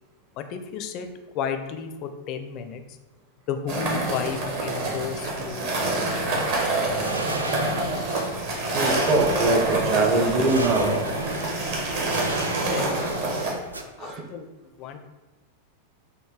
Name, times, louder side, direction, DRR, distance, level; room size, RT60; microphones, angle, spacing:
voice 1, 0.4-1.1 1.3-2.8 3.5-5.9 12.7-13.2 13.8-14.5 14.8-15.0, left 7 dB, 40° left, 8 dB, 0.4 m, -33 dB
sound 1, 3.7-13.5, right 2 dB, 50° right, 1.1 m, -26 dB
sound 2, 6.6-13.8, right 2 dB, 80° right, 0.4 m, -35 dB
voice 2, 8.7-11.0 14.0-14.2, right 3 dB, 35° right, 1 dB, 0.7 m, -23 dB
4.4 x 2.6 x 3.6 m, 1.1 s
figure-of-eight pair, 90°, 0 cm